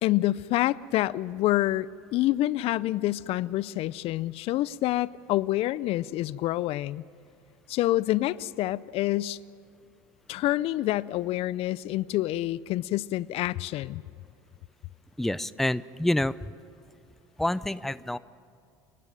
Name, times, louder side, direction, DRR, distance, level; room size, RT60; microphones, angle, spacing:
voice 1, 0.0-7.0 7.7-9.4 10.3-14.0, left 16 dB, 55° left, 20 dB, 0.5 m, -27 dB
voice 2, 15.2-16.3 17.4-18.2, left 1 dB, ahead, 17 dB, 0.5 m, -27 dB
28.5 x 12.0 x 9.2 m, 2.5 s
supercardioid pair, 90°, 12 cm